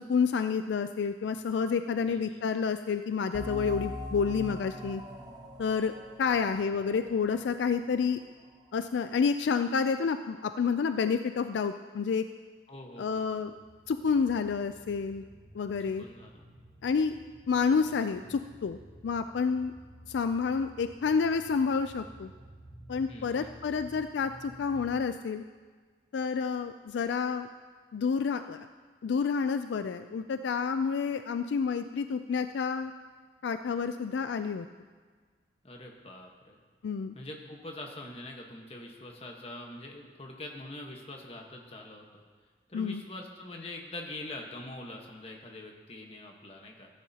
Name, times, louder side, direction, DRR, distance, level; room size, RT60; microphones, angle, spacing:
voice 1, 0.0-5.0 5.6-5.9 6.2-8.2 8.7-12.2 13.0-13.5 13.9-15.2 15.5-16.0 16.8-17.2 17.5-18.8 19.0-19.7 20.1-22.3 22.9-25.4 26.1-27.5 27.9-28.7 29.0-32.9 33.4-34.7 36.8-37.2 42.7-43.0, left 5 dB, 75° left, 9 dB, 0.3 m, -29 dB
voice 2, 2.1-2.4 12.7-13.4 15.8-16.5 23.1-23.5 35.6-36.6 37.1-42.2 42.7-46.9, left 1 dB, 30° left, 1 dB, 1.2 m, -44 dB
sound 1, 3.3-8.6, left 1 dB, 20° right, 0.8 m, -42 dB
sound 2, 13.3-25.0, right 1 dB, 60° right, 2.3 m, -53 dB
14.5 x 10.5 x 2.8 m, 1.5 s
head